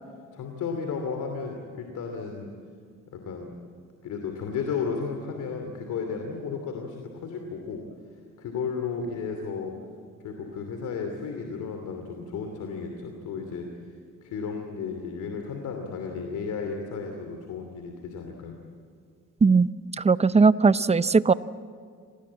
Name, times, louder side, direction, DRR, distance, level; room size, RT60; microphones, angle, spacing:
voice 1, 0.3-2.5 3.1-3.5 4.0-7.8 8.4-9.7 10.2-13.7 14.2-18.6, left 5 dB, 80° left, 4 dB, 2.9 m, -33 dB
voice 2, 20.0-21.3, right 4 dB, 20° right, 16 dB, 0.6 m, -19 dB
26.5 x 19.0 x 8.7 m, 2.1 s
cardioid pair, 90°, 30 cm